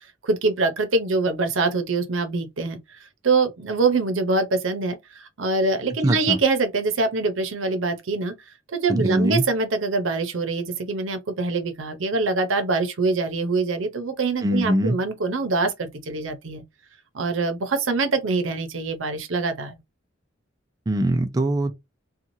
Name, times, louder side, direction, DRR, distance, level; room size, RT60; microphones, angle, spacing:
voice 1, 0.2-2.8 3.2-8.3 8.7-16.6 17.1-19.8, right 3 dB, 90° right, 0.7 m, -24 dB
voice 2, 6.0-6.4 8.9-9.5 14.4-15.0 20.9-21.7, right 1 dB, 20° right, 0.4 m, -22 dB
3.0 x 2.3 x 2.6 m
head